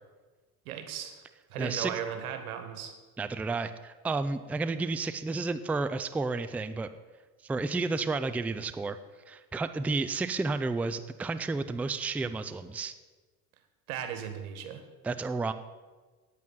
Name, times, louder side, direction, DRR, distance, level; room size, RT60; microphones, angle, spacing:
voice 1, 0.6-1.2 1.5-2.9 13.9-14.8, right 9 dB, 85° right, 7 dB, 1.6 m, -36 dB
voice 2, 1.6-1.9 3.2-6.9 7.4-9.0 9.3-12.9 15.0-15.5, right 3 dB, 5° right, 11 dB, 0.4 m, -31 dB
9.2 x 8.4 x 7.7 m, 1.3 s
supercardioid pair, 85°, 42 cm